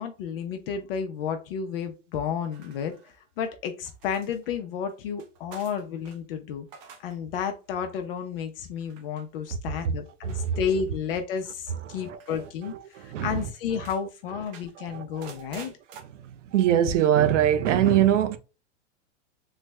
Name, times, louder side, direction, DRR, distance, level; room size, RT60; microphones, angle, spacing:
voice 1, 0.0-6.7 7.0-15.7, left 7 dB, 50° left, 0.5 m, -32 dB
sound 1, 2.5-3.4 3.8-6.2 6.6-7.2 7.5-7.8 8.8-9.2 10.3-11.0 12.2-12.5 12.9-13.0 13.3-14.0 14.5-16.0, right 6 dB, 35° right, 0.6 m, -49 dB
voice 2, 10.2-10.7 11.8-13.5 13.8-13.9 14.8-15.7 16.1-18.4, right 10 dB, 75° right, 0.6 m, -24 dB
3.2 x 2.0 x 3.2 m
supercardioid pair, 150°, 37 cm